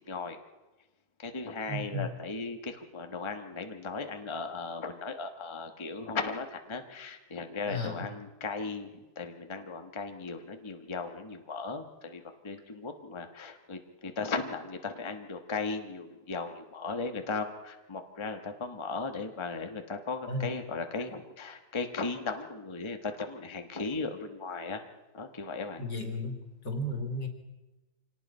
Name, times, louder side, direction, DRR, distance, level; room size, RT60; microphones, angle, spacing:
voice 1, 0.1-0.4 1.2-24.8 25.1-25.8, left 4 dB, 20° left, 6 dB, 1.2 m, -37 dB
voice 2, 1.7-2.1 7.7-8.0 20.3-20.5 25.8-26.4 26.6-27.3, left 1 dB, 75° left, 4 dB, 3.1 m, -33 dB
26.0 x 18.0 x 5.5 m, 1.1 s
omnidirectional pair, 1.9 m